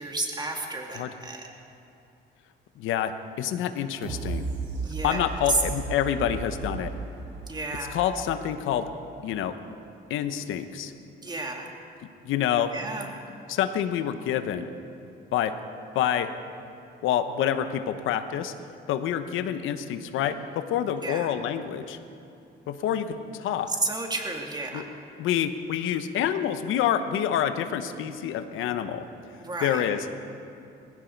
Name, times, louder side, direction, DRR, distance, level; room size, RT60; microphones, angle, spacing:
voice 1, 0.0-1.5 4.8-5.6 7.5-8.0 11.2-11.7 12.7-13.1 21.0-21.3 23.7-24.9 29.4-29.9, right 2 dB, 20° right, 1 dB, 2.5 m, -31 dB
voice 2, 2.8-3.1 3.4-4.4 5.0-6.9 7.9-8.9 9.2-9.5 10.1-10.9 12.2-12.7 13.5-14.7 15.3-15.5 15.9-16.3 17.0-18.5 18.9-22.0 22.7-23.7 24.7-24.8 25.2-29.0 29.6-30.0, left 10 dB, 90° left, 10 dB, 0.9 m, -27 dB
sound 1, 4.0-8.9 9.4-9.5, right 4 dB, 85° right, 3.2 m, -35 dB
19.5 x 16.0 x 4.6 m, 2.7 s
cardioid pair, 90°, 20 cm